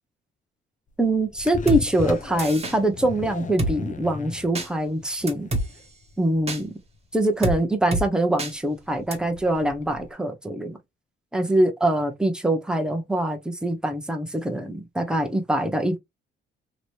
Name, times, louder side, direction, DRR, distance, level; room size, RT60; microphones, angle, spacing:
sound 1, 0.9-10.1, left 5 dB, 40° left, 0.8 m, -38 dB
voice 1, 1.0-5.5 6.2-6.7 7.1-10.8 11.3-16.0, right 1 dB, 5° right, 0.9 m, -24 dB
Drum kit, 1.7-1.8 2.4-2.7 3.6-3.7 4.5-4.7 5.3-5.7 6.5-6.6 7.4-7.6 7.9-8.1 8.4-8.5 9.1-9.2, right 1 dB, 30° right, 1.2 m, -26 dB
3.0 x 3.0 x 2.5 m
cardioid pair, 90°, 20 cm